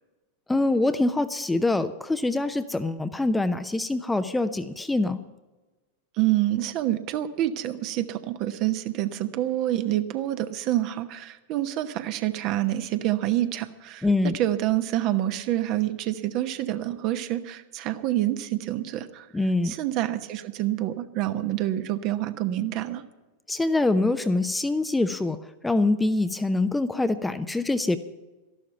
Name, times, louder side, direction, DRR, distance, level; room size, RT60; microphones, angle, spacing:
voice 1, 0.5-5.2 14.0-14.3 19.3-19.7 23.5-28.0, left 2 dB, 5° left, 11 dB, 0.6 m, -24 dB
voice 2, 6.2-14.1 14.3-19.3 19.6-23.0, right 14 dB, 40° right, 10 dB, 1.0 m, -27 dB
13.5 x 11.5 x 6.9 m, 1.2 s
figure-of-eight pair, 90°, 0 cm